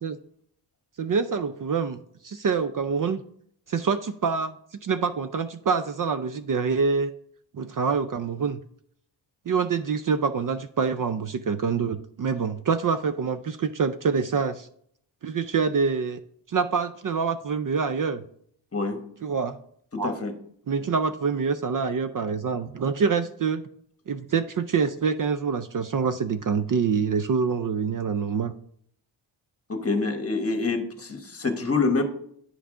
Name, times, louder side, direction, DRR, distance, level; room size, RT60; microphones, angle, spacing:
voice 1, 1.0-2.0 2.2-3.2 3.7-7.1 7.5-8.6 9.5-14.7 15.2-16.2 16.5-18.2 19.2-19.6 20.0-20.2 20.7-23.6 24.1-28.5, right 5 dB, 45° right, 10 dB, 0.5 m, -26 dB
voice 2, 19.9-20.3 29.7-32.0, left 3 dB, 30° left, 6 dB, 1.2 m, -26 dB
9.8 x 5.8 x 3.7 m, 0.65 s
wide cardioid pair, 130°, 46 cm